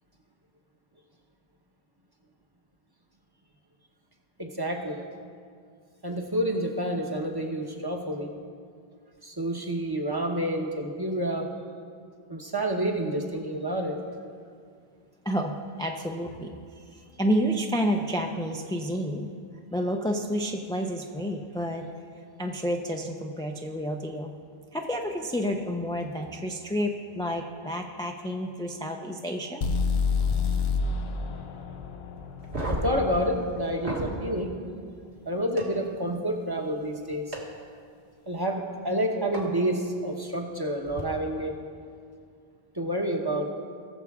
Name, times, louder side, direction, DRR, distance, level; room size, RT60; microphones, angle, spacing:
voice 1, 4.4-5.0 6.0-8.3 9.2-11.5 12.3-14.0 32.7-34.5 35.3-37.4 38.3-41.5 42.7-43.5, right 1 dB, 25° right, 2 dB, 1.0 m, -29 dB
voice 2, 15.2-16.6 17.2-19.3 19.7-21.9 22.4-24.3 24.7-29.6, equal, 5° left, 2 dB, 0.4 m, -30 dB
sound 1, 29.6-33.5, left 5 dB, 80° left, 1.0 m, -28 dB
sound 2, 32.4-34.2 35.6-35.7 37.3-37.4 39.3-39.4 40.8-41.0, right 1 dB, 65° right, 2.1 m, -32 dB
19.5 x 7.1 x 3.6 m, 2.2 s
omnidirectional pair, 1.0 m